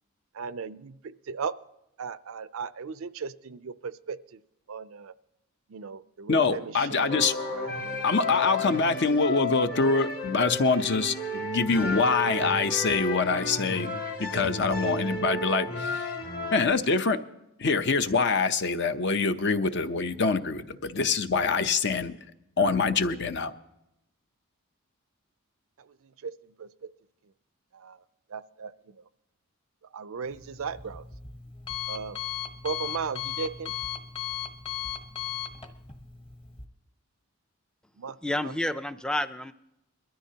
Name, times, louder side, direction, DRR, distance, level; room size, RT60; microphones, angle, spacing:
voice 1, 0.3-1.6 2.0-4.4 4.7-5.1 5.7-7.2 7.5-8.0 26.2-26.3 26.6-26.7 27.7-28.0 28.3-28.7 29.9-31.0 31.9-32.2 32.6-33.7 38.0-38.2, right 5 dB, 65° right, 0.5 m, -36 dB
voice 2, 6.3-7.3 8.0-16.0 16.5-17.2 17.6-22.2 22.6-23.5, left 4 dB, 55° left, 0.7 m, -25 dB
sound 1, 7.1-16.7, left 2 dB, 80° left, 2.1 m, -33 dB
Alarm, 30.2-36.6, left 10 dB, 25° left, 1.0 m, -37 dB
voice 3, 38.2-39.5, left 1 dB, 5° left, 0.4 m, -29 dB
22.0 x 13.5 x 2.8 m
head